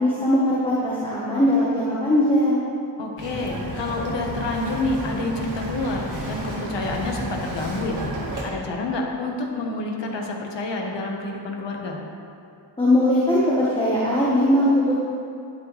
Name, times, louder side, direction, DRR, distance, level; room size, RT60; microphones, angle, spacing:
voice 1, 0.0-2.6 12.8-14.9, left 1 dB, 10° left, -7 dB, 1.5 m, -20 dB
voice 2, 3.0-8.1 8.4-12.0, left 2 dB, 75° left, 0 dB, 1.6 m, -28 dB
Bird vocalization bird call bird song, 3.2-8.4, right 1 dB, 45° right, 2.0 m, -32 dB
11.0 x 11.0 x 3.4 m, 2.5 s
wide cardioid pair, 150°, 43 cm